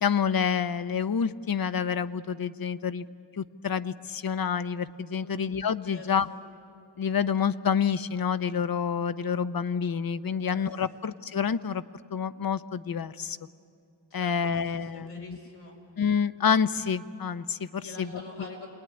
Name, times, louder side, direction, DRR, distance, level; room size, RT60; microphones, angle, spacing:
voice 1, 0.0-3.1 3.4-6.3 7.0-11.8 12.1-13.4 14.1-15.4 16.0-18.2, left 7 dB, 55° left, 13 dB, 0.8 m, -28 dB
voice 2, 5.8-6.4 10.4-11.0 14.1-14.3 14.6-15.8 17.8-18.7, left 3 dB, 80° left, -1 dB, 6.1 m, -45 dB
28.5 x 20.5 x 9.8 m, 2.4 s
wide cardioid pair, 105°, 43 cm